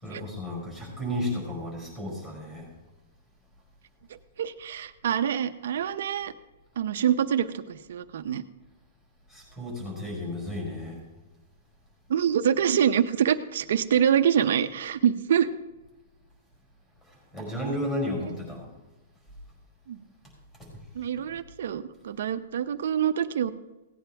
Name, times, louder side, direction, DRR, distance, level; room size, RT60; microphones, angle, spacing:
voice 1, 0.0-2.7 9.3-11.0 17.0-18.7 20.6-20.8, left 1 dB, 15° left, -1 dB, 4.9 m, -33 dB
voice 2, 4.4-6.3 6.8-8.4 12.1-15.5 19.9-20.0 20.9-23.5, right 9 dB, 60° right, 9 dB, 0.7 m, -25 dB
17.5 x 9.1 x 3.5 m, 1.1 s
hypercardioid pair, 170°, 0 cm